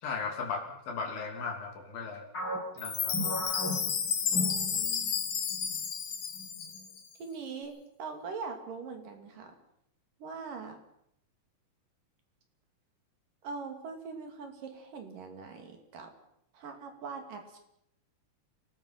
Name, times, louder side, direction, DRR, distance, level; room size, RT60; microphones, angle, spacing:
voice 1, 0.0-2.3 2.7-3.2, left 5 dB, 70° left, 2 dB, 4.8 m, -36 dB
sound 1, 2.3-5.2 5.5-5.7 6.4-6.8, equal, 30° left, 6.9 m, -36 dB
Chime, 2.8-7.0, left 7 dB, 50° left, 2.5 m, -32 dB
voice 2, 4.3-5.1 7.2-9.5 10.2-10.8 13.4-16.1 16.5-17.6, right 5 dB, 65° right, 4 dB, 4.3 m, -42 dB
27.5 x 19.0 x 5.8 m, 0.74 s
omnidirectional pair, 4.1 m